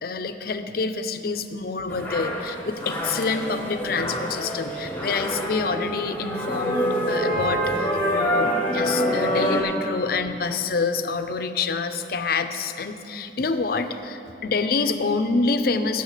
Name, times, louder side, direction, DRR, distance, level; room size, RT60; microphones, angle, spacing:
voice 1, 0.0-16.0, left 4 dB, 55° left, 9 dB, 0.5 m, -27 dB
sound 1, 1.9-9.6, equal, 10° left, 1.2 m, -26 dB
8.1 x 6.7 x 8.1 m, 2.8 s
head